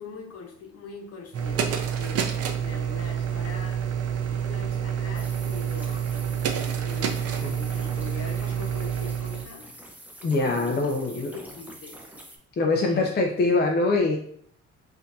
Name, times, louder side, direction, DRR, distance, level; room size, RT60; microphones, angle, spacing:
voice 1, 0.0-3.8 4.3-6.1 6.8-9.7 10.3-12.0 12.6-13.0, left 4 dB, 55° left, 0 dB, 1.0 m, -42 dB
sound 1, 1.3-9.4, right 8 dB, 55° right, 0.5 m, -28 dB
sound 2, 5.1-12.4, right 1 dB, 5° right, 0.7 m, -46 dB
voice 2, 10.2-11.3 12.6-14.2, left 3 dB, 35° left, 1 dB, 0.5 m, -23 dB
4.3 x 2.6 x 2.6 m, 0.62 s
cardioid pair, 90°, 30 cm